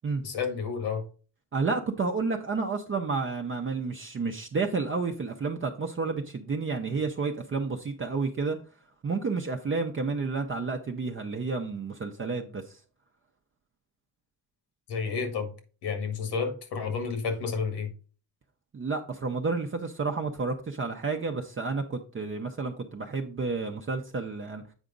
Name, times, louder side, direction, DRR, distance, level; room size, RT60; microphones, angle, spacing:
voice 1, 0.2-1.0 14.9-15.5 15.8-17.9, left 5 dB, 85° left, 2.0 m, -30 dB
voice 2, 1.5-8.6 9.0-12.8 18.7-24.6, right 4 dB, 30° right, 0.8 m, -30 dB
8.1 x 4.9 x 3.9 m
cardioid pair, 135°, 39 cm